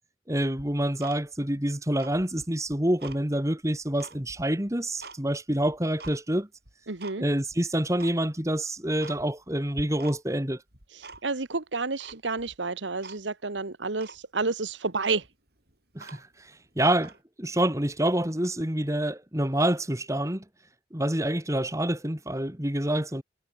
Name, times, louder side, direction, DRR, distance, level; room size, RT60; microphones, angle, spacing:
voice 1, 0.3-6.5 7.2-10.6 15.9-16.3 16.8-17.1 17.4-20.4 20.9-23.2, right 1 dB, 15° right, 2.5 m, -27 dB
Tick-tock, 0.6-1.6 1.9-3.2 3.6-5.2 5.6-6.2 6.7-7.2 7.5-7.6 8.0-8.2 8.6-8.7 9.0-9.5 9.7-10.4 10.7-11.5 12.0-12.6 13.0-13.2 13.6-13.7 14.0-14.2 14.7-14.8 15.0-16.5 16.9-17.2, right 3 dB, 55° right, 7.7 m, -46 dB
voice 2, 6.9-7.2 10.9-15.3, right 3 dB, 80° right, 1.5 m, -30 dB
head